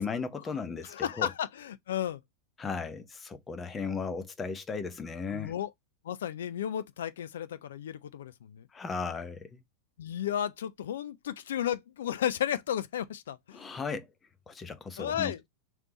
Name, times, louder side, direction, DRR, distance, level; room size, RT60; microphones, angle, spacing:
voice 1, 0.0-1.3 2.6-5.5 8.7-9.6 13.5-14.1 14.5-15.5, left 5 dB, 20° left, 0.7 m, -36 dB
voice 2, 0.8-2.2 5.3-5.7 6.0-8.7 10.0-13.7 15.0-15.4, left 10 dB, 60° left, 0.5 m, -33 dB
3.3 x 3.2 x 3.8 m
figure-of-eight pair, 90°, 0 cm